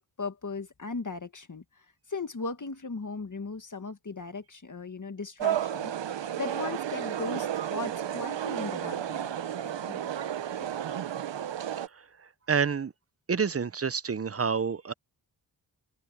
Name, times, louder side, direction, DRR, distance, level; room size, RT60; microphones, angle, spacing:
voice 1, 0.0-1.6 2.1-5.9 6.4-9.3 9.6-10.1, left 4 dB, 45° left, 1.7 m, -37 dB
sound 1, 5.4-11.9, right 10 dB, 90° right, 0.7 m, -32 dB
voice 2, 12.5-12.9 13.3-14.9, right 6 dB, 35° right, 0.6 m, -28 dB
open air
wide cardioid pair, 65°, 42 cm